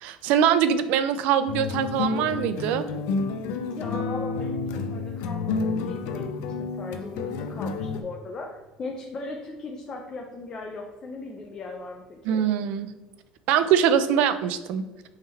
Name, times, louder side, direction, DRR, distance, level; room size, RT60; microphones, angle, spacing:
voice 1, 0.0-2.9 12.3-12.9 13.5-14.8, right 8 dB, 70° right, 12 dB, 0.4 m, -23 dB
sound 1, 1.5-8.0, left 4 dB, 85° left, 0.4 m, -30 dB
voice 2, 3.7-12.4, left 3 dB, 30° left, 1 dB, 0.5 m, -38 dB
3.5 x 3.3 x 4.3 m, 1.1 s
cardioid pair, 135°, 3 cm